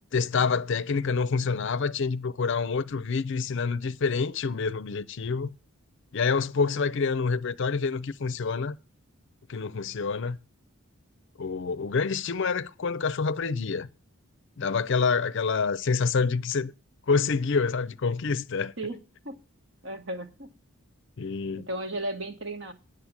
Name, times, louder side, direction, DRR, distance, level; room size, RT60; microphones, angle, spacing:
voice 1, 0.1-5.5 6.1-8.8 9.5-10.4 11.4-13.9 14.6-16.7 17.1-18.7 21.2-21.7, left 5 dB, 55° left, 0.5 m, -27 dB
voice 2, 19.8-20.5 21.6-22.7, right 1 dB, 55° right, 1.4 m, -34 dB
9.5 x 6.6 x 7.2 m
head